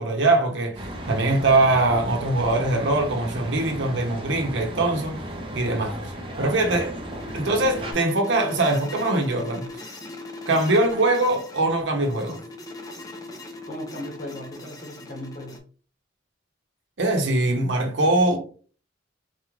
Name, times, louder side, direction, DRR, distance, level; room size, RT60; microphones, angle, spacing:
voice 1, 0.0-5.2 5.5-6.0 6.4-7.0 7.3-9.7 10.5-12.4 17.0-18.4, right 2 dB, 65° right, 0.9 m, -22 dB
sound 1, 0.7-7.9, right 1 dB, 30° right, 0.7 m, -35 dB
sound 2, 6.4-15.6, left 2 dB, 20° left, 0.5 m, -40 dB
voice 2, 13.7-15.6, left 1 dB, 40° left, 1.2 m, -37 dB
4.1 x 2.5 x 3.1 m
head